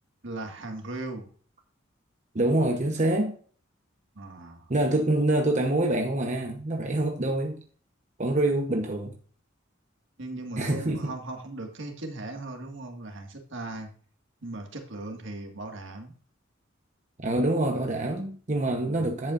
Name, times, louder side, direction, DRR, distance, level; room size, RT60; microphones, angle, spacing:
voice 1, 0.2-1.3 4.1-4.7 10.2-13.9 14.4-16.1 19.0-19.1, right 2 dB, 65° right, 1.9 m, -38 dB
voice 2, 2.3-3.4 4.7-7.6 8.2-9.1 10.6-11.1 17.2-19.3, right 1 dB, 40° right, 1.0 m, -26 dB
10.5 x 8.3 x 2.5 m
head